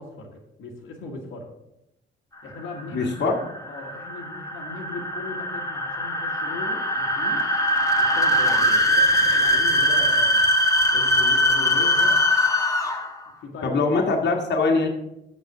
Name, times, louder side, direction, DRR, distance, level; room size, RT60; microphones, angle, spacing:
voice 1, 0.0-1.5 2.4-3.4 3.7-7.5 8.0-10.4 10.9-12.2 13.4-13.8, left 2 dB, 80° left, 0 dB, 1.6 m, -38 dB
sound 1, 2.6-13.2, left 1 dB, 15° left, 1.2 m, -21 dB
voice 2, 2.9-3.4 13.6-14.9, left 3 dB, 60° left, 1 dB, 1.6 m, -22 dB
6.8 x 6.4 x 5.9 m, 0.86 s
cardioid pair, 90°, 20 cm